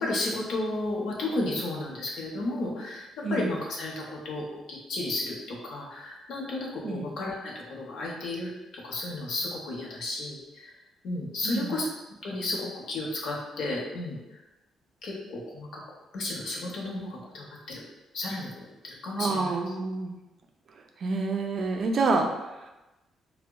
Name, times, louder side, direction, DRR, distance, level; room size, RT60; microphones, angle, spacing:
voice 1, 0.0-10.7 11.0-11.9 12.2-14.4 15.0-15.8 16.1-17.8 18.1-19.6, left 2 dB, 75° left, -3 dB, 0.7 m, -33 dB
voice 2, 11.4-11.8 19.2-20.2 21.0-22.3, right 3 dB, 55° right, 3 dB, 0.4 m, -27 dB
3.6 x 2.0 x 2.2 m, 1.0 s
cardioid pair, 90°, 0 cm